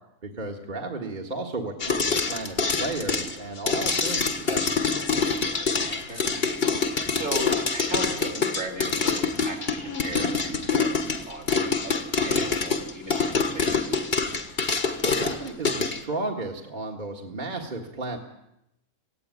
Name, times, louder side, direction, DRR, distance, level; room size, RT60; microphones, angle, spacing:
voice 1, 0.2-2.0 2.2-4.6 15.0-18.2, right 2 dB, 35° right, 0 dB, 1.9 m, -33 dB
sound 1, 1.8-16.0, left 4 dB, 45° left, 1.8 m, -25 dB
voice 2, 5.4-6.3 7.1-13.9, right 1 dB, 60° right, 3 dB, 3.9 m, -37 dB
18.0 x 16.0 x 9.8 m, 0.85 s
omnidirectional pair, 1.5 m